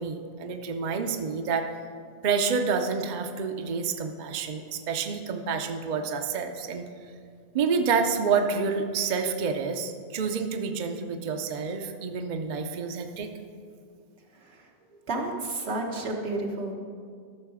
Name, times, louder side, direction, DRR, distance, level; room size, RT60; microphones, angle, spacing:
voice 1, 0.0-1.7 2.2-6.9 7.5-13.3, right 5 dB, 50° right, 5 dB, 0.7 m, -28 dB
voice 2, 15.1-16.8, right 2 dB, 85° right, 1 dB, 1.5 m, -31 dB
13.0 x 6.5 x 4.8 m, 2.2 s
omnidirectional pair, 1.0 m